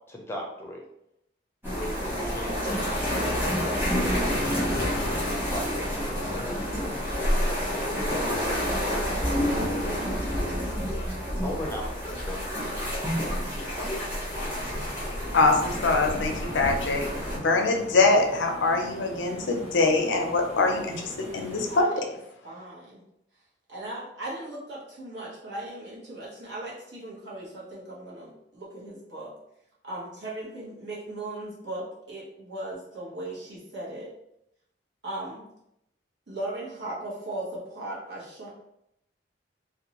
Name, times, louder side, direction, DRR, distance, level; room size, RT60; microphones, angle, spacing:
voice 1, 0.1-0.8 1.7-4.5 5.5-6.9 7.8-10.2 11.4-12.4, left 1 dB, 15° left, -1 dB, 0.5 m, -39 dB
sound 1, 1.6-17.4, equal, 10° right, 1.0 m, -28 dB
voice 2, 15.3-17.0 17.4-21.8, left 3 dB, 85° left, 3 dB, 0.5 m, -23 dB
sound 2, 16.2-21.8, equal, 40° right, 0.7 m, -42 dB
voice 3, 21.7-22.2 22.4-23.0 23.7-29.3 29.8-34.1 35.0-35.4 36.3-38.5, right 1 dB, 70° right, -5 dB, 1.0 m, -37 dB
2.6 x 2.1 x 2.9 m, 0.81 s
head